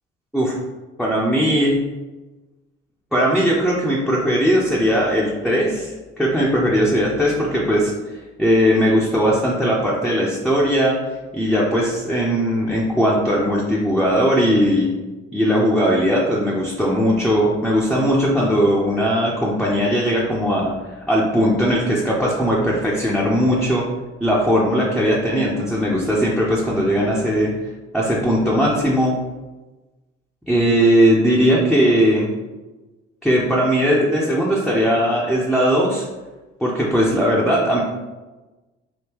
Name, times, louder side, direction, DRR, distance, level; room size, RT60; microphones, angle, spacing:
voice 1, 1.0-1.8 3.1-7.9 8.4-11.0 11.3-14.9 15.3-20.7 21.1-23.8 24.2-27.5 27.9-29.2 30.5-32.3 33.2-36.0 36.6-37.8, equal, ahead, -5 dB, 0.7 m, -18 dB
3.6 x 2.6 x 2.9 m, 1.2 s
hypercardioid pair, 65°, 31 cm